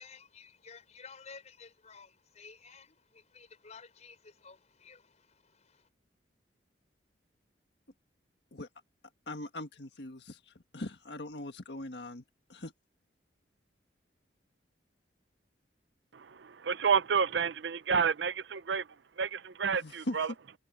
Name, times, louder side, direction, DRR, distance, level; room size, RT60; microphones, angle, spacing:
voice 1, 0.0-5.9, left 5 dB, 40° left, 4.5 m, -53 dB
voice 2, 9.3-12.2 12.5-12.7 19.8-20.2, left 1 dB, 70° left, 1.6 m, -41 dB
voice 3, 16.1-18.9 19.2-20.3, right 6 dB, 80° right, 0.6 m, -30 dB
head